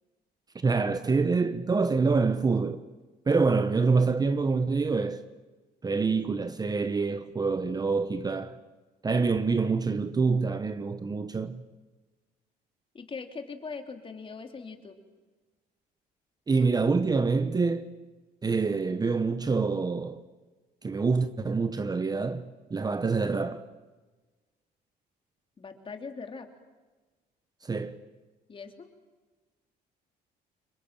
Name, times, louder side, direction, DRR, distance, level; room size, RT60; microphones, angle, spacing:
voice 1, 0.5-2.9 3.3-5.2 5.8-8.6 9.0-11.6 16.5-17.9 18.4-20.2 20.8-23.6 27.6-28.0, right 4 dB, 25° right, 1.1 m, -26 dB
voice 2, 12.9-15.0 25.6-26.5 28.5-28.9, left 4 dB, 30° left, 3.3 m, -41 dB
26.5 x 22.5 x 9.0 m
cardioid pair, 110°, 17 cm